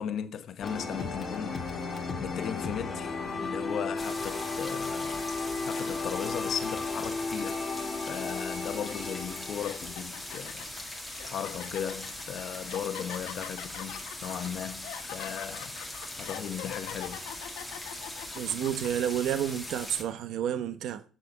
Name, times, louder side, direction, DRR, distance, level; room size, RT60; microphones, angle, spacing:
voice 1, 0.0-7.7 7.9-10.7 11.2-15.8 16.2-17.3, left 9 dB, 50° left, 1.0 m, -37 dB
sound 1, 0.6-10.5, left 3 dB, 25° left, 1.8 m, -34 dB
sound 2, 4.0-20.0, left 1 dB, 5° left, 2.0 m, -41 dB
sound 3, 8.9-9.0 9.5-18.9, left 12 dB, 90° left, 1.2 m, -43 dB
voice 2, 18.3-21.0, right 10 dB, 65° right, 0.9 m, -30 dB
6.9 x 6.9 x 7.2 m
cardioid pair, 140°, 0 cm